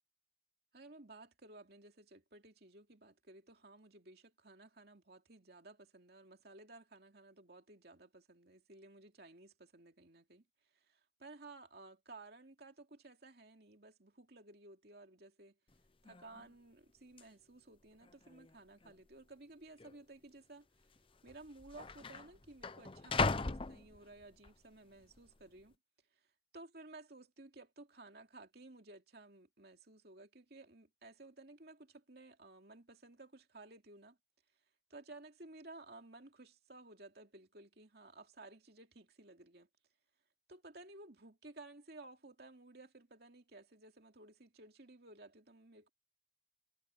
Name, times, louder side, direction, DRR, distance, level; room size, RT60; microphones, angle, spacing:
voice 1, 0.7-10.5 10.7-15.6 16.0-20.7 21.2-25.8 26.1-26.2 26.5-34.2 34.9-39.7 40.5-45.9, right 2 dB, 55° right, 2.7 m, -56 dB
sound 1, 15.7-15.8 16.1-16.5 17.2-17.3 18.0-18.5 18.8-18.9 19.8-20.0 21.0-21.1 21.3-24.5 25.0-25.4, left 3 dB, 30° left, 0.7 m, -38 dB
head